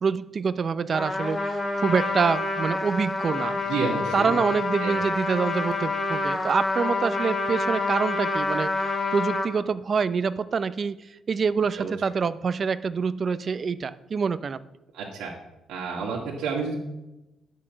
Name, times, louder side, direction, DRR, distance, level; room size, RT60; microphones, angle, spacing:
voice 1, 0.0-3.6 4.1-10.9 11.3-14.6, right 5 dB, 45° right, 14 dB, 0.6 m, -26 dB
Trumpet, 0.9-9.5, left 3 dB, 25° left, 2.2 m, -27 dB
voice 2, 3.7-4.4 4.8-4.9 11.8-11.9 14.9-15.3 15.7-16.8, right 5 dB, 85° right, -3 dB, 1.9 m, -30 dB
10.0 x 6.2 x 7.5 m, 0.96 s
cardioid pair, 90°, 0 cm